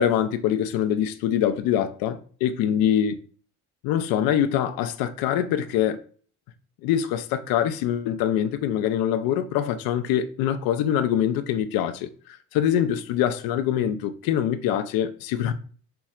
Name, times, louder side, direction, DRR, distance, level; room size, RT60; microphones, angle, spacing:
voice 1, 0.0-3.1 3.8-6.0 6.8-12.1 12.5-15.5, left 10 dB, 85° left, 0.5 m, -24 dB
5.7 x 2.0 x 2.4 m
cardioid pair, 90°, 35 cm